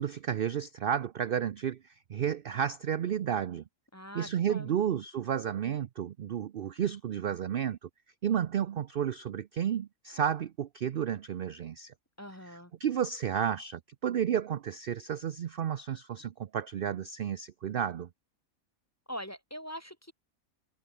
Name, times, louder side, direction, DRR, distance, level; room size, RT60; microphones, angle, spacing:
voice 1, 0.0-3.6 4.1-7.9 8.2-11.9 12.5-18.1, right 9 dB, 55° right, 0.6 m, -32 dB
voice 2, 3.9-4.8 12.2-12.7 19.1-20.1, equal, 10° left, 1.2 m, -42 dB
omnidirectional pair, 1.5 m